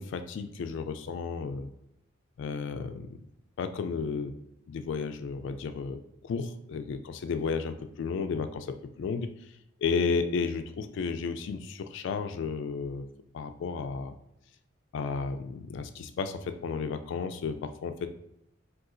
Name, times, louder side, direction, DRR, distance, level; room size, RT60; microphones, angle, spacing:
voice 1, 0.0-1.7 2.4-3.1 3.6-4.3 4.7-6.0 6.2-9.3 9.8-13.0 13.3-14.1 14.9-18.1, left 5 dB, 65° left, 8 dB, 0.3 m, -33 dB
3.8 x 2.4 x 2.5 m, 0.84 s
head